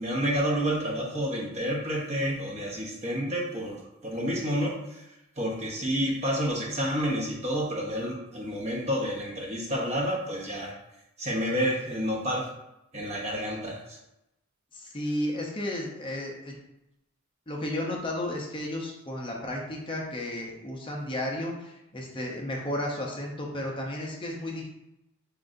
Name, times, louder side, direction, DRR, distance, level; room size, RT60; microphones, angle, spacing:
voice 1, 0.0-3.8 4.0-5.0 5.4-10.7 11.2-12.5 12.9-14.0, equal, 30° right, -2 dB, 0.9 m, -29 dB
voice 2, 14.7-16.5 17.5-24.7, left 1 dB, 25° left, -2 dB, 0.6 m, -33 dB
7.5 x 2.5 x 2.6 m, 0.88 s
head